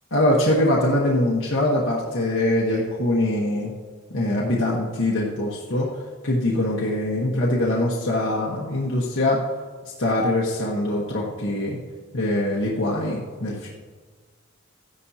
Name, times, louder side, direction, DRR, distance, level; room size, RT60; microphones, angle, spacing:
voice 1, 0.1-3.7 4.1-5.9 6.2-9.4 10.0-11.8 12.1-13.7, left 1 dB, 65° left, -4 dB, 1.3 m, -23 dB
14.5 x 10.5 x 2.8 m, 1.5 s
head